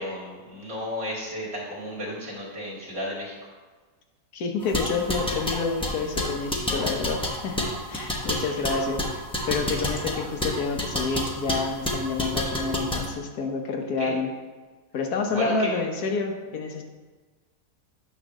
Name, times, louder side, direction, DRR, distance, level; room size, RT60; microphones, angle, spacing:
voice 1, 0.0-3.5 8.1-8.6 14.0-14.2 15.3-15.9, left 1 dB, 50° right, -5 dB, 2.4 m, -34 dB
voice 2, 4.3-14.3 14.9-16.8, left 4 dB, 80° left, 3 dB, 1.4 m, -29 dB
sound 1, 4.6-13.1, left 1 dB, 5° left, 0.7 m, -29 dB
9.1 x 3.3 x 6.3 m, 1.3 s
omnidirectional pair, 1.6 m